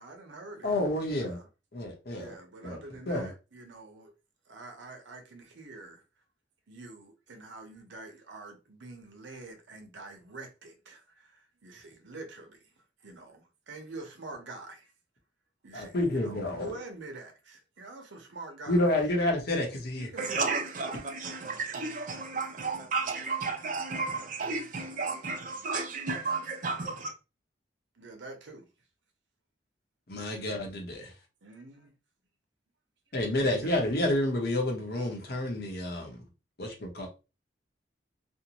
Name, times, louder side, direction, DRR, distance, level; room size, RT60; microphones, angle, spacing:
voice 1, 0.0-0.7 1.0-1.5 2.2-4.1 4.5-6.0 6.7-12.7 13.0-14.9 15.6-18.9 20.0-20.5 28.0-28.7 31.4-31.9 33.4-33.8, right 2 dB, 90° right, 0.8 m, -46 dB
voice 2, 0.6-1.4 1.7-2.3 2.6-2.8 3.1-3.3 15.7-16.7 18.7-20.1 30.1-31.1 33.1-36.2 36.6-37.1, left 1 dB, 60° left, 0.8 m, -29 dB
voice 3, 20.2-27.1, right 4 dB, 45° right, 0.5 m, -33 dB
2.6 x 2.1 x 2.9 m
head